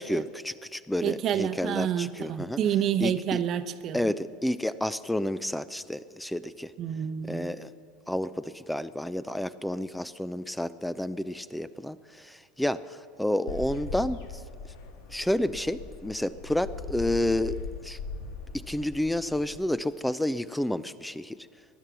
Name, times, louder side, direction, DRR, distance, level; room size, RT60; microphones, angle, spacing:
voice 1, 0.0-2.6 3.0-3.4 3.9-6.7 7.3-7.7 8.1-14.4 15.1-18.0 18.5-21.5, left 1 dB, 5° left, 16 dB, 0.5 m, -30 dB
voice 2, 1.0-4.0 6.8-7.5, right 9 dB, 45° right, 10 dB, 0.8 m, -29 dB
sound 1, 13.5-19.6, left 4 dB, 65° left, 1.6 m, -40 dB
18.5 x 11.5 x 6.2 m, 2.2 s
hypercardioid pair, 80°, 0 cm